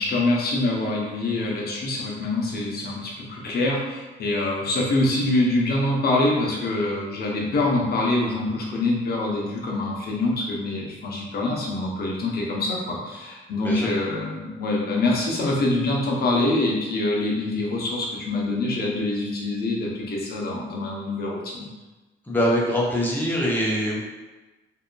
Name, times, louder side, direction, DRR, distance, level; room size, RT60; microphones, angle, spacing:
voice 1, 0.0-21.7, left 2 dB, 50° left, -3 dB, 0.7 m, -25 dB
voice 2, 13.6-13.9 22.2-24.0, equal, 10° left, -5 dB, 0.7 m, -23 dB
2.7 x 2.4 x 2.2 m, 1.1 s
cardioid pair, 90°, 20 cm